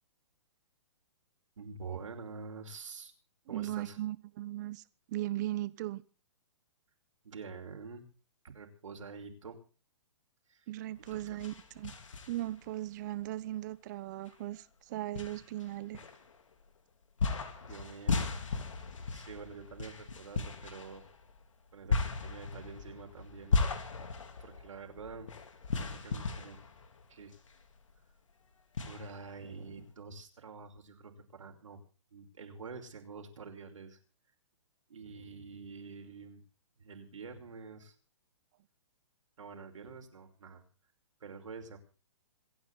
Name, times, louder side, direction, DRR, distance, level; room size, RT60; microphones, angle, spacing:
voice 1, 1.6-3.1 3.5-4.0 7.2-8.1 8.4-9.6 10.5-10.7 11.1-11.2 17.6-18.3 19.1-21.0 21.7-23.6 23.9-25.3 25.8-26.6 27.1-27.3 28.8-31.8 32.1-34.0 34.9-36.4 36.8-37.9 39.4-40.6 41.2-41.8, right 4 dB, 85° right, 5.5 m, -47 dB
voice 2, 3.5-4.8 5.1-6.0 10.7-11.9 12.3-16.0, right 15 dB, 35° right, 1.1 m, -38 dB
sound 1, 10.9-12.7 13.2-13.3 14.3-14.4 15.1-16.6 17.2-27.6 27.9-28.0 28.7-29.8, left 4 dB, 85° left, 3.6 m, -36 dB
27.0 x 9.5 x 4.2 m
hypercardioid pair, 155°, 16 cm